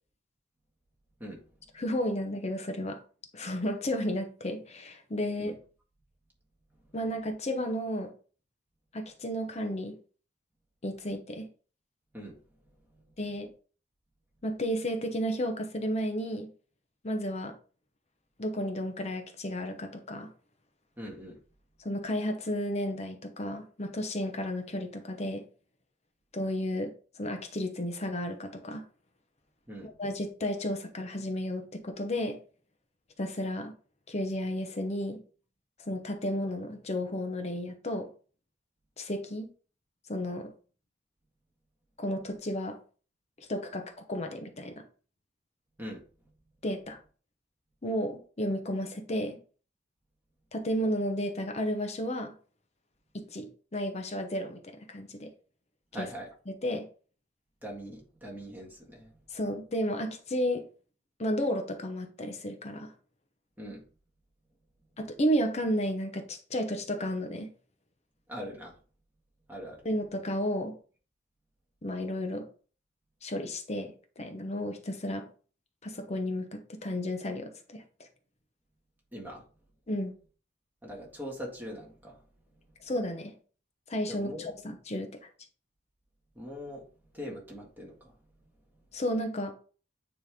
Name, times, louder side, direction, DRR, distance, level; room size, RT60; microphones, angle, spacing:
voice 1, 1.8-3.0 3.3-5.6 6.9-8.1 8.9-10.0 10.8-11.5 13.2-13.5 14.4-16.5 17.0-17.5 18.4-20.3 21.8-25.4 26.3-28.8 30.0-32.4 33.2-33.7 34.1-35.2 35.8-38.1 39.0-39.5 40.1-40.5 42.0-42.8 43.5-44.8 46.6-47.0 47.8-49.4 50.5-52.3 53.1-55.3 56.0-56.1 56.5-56.8 59.3-60.7 61.2-62.9 65.0-67.5 69.8-70.7 71.8-72.5 73.2-75.3 75.8-77.8 79.9-80.1 82.8-83.3 83.9-85.1 88.9-89.5, equal, 35° left, 0.8 m, -32 dB
voice 2, 21.0-21.4 29.7-29.9 45.8-46.0 55.9-56.3 57.6-59.2 63.6-63.8 68.3-68.8 69.5-69.8 79.1-79.4 80.8-82.2 84.1-84.5 86.4-86.9 87.1-88.1, equal, 10° right, 1.8 m, -41 dB
9.1 x 3.2 x 3.6 m
head